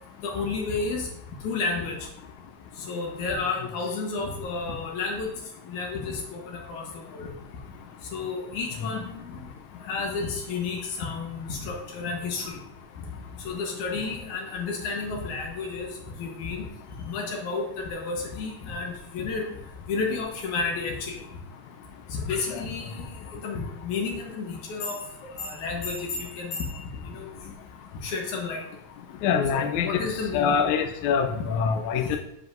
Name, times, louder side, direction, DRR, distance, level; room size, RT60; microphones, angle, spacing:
voice 1, 0.2-1.1 1.4-1.9 2.9-5.3 5.7-7.3 8.1-9.4 9.9-12.6 13.4-15.9 16.2-16.7 17.0-19.4 19.9-21.2 22.1-25.0 25.4-27.4 28.0-28.6 29.5-30.6, left 4 dB, 65° left, 1 dB, 2.5 m, -31 dB
voice 2, 29.2-30.0 30.3-32.2, left 6 dB, 80° left, 4 dB, 1.6 m, -25 dB
7.6 x 7.5 x 2.6 m, 0.78 s
omnidirectional pair, 3.9 m